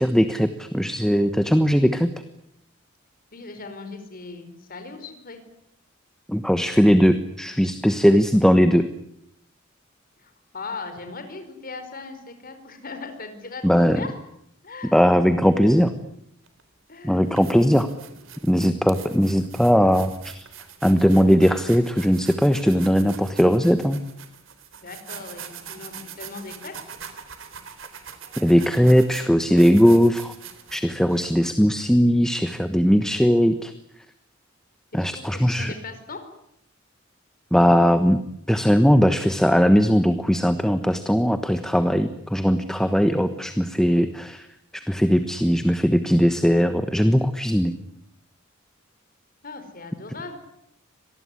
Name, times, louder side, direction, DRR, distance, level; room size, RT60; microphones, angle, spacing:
voice 1, 0.0-2.1 6.3-8.9 13.6-14.0 14.9-15.9 17.0-17.9 18.4-20.5 20.8-24.0 28.4-30.3 30.7-33.7 34.9-35.7 37.5-38.2 38.5-44.5 44.7-47.7, equal, 5° left, 10 dB, 1.2 m, -19 dB
voice 2, 3.3-5.4 10.2-14.1 14.6-15.0 16.9-17.3 24.7-26.7 35.0-36.2 49.4-50.4, left 3 dB, 45° left, 7 dB, 5.0 m, -38 dB
sound 1, 16.5-16.6 17.1-31.3, right 8 dB, 75° right, 3.8 m, -42 dB
26.0 x 19.5 x 9.8 m, 0.76 s
head